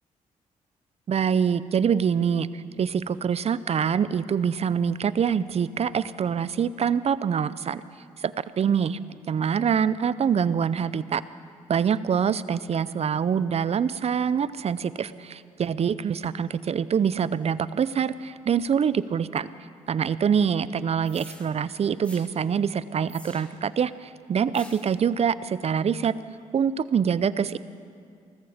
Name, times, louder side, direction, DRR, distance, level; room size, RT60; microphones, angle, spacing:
voice 1, 1.1-7.8 8.2-11.2 11.7-19.5 19.9-26.1 26.5-27.6, right 7 dB, 50° right, 17 dB, 0.5 m, -25 dB
sound 1, 21.0-21.5 22.0-22.3 23.1-23.7 24.5-24.9, equal, 10° left, 2.2 m, -47 dB
19.0 x 14.0 x 5.1 m, 2.3 s
supercardioid pair, 65°, 14 cm